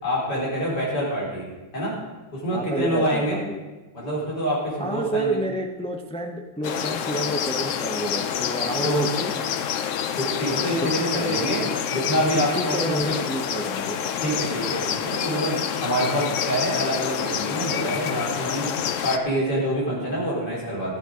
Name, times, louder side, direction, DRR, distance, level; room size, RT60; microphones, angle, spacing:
voice 1, 0.0-1.5 1.7-2.0 2.3-3.4 3.9-5.4 8.8-9.1 10.2-11.6 11.9-13.2 14.2-18.7 19.0-21.0, equal, 55° left, -5 dB, 5.0 m, -26 dB
voice 2, 2.5-3.6 4.8-9.3 10.8-11.4 11.6-11.7 12.5-14.0, right 1 dB, 5° left, 2 dB, 0.5 m, -29 dB
sound 1, 6.6-19.2, left 8 dB, 75° left, 0.7 m, -27 dB
15.0 x 9.0 x 5.1 m, 1.2 s
omnidirectional pair, 2.1 m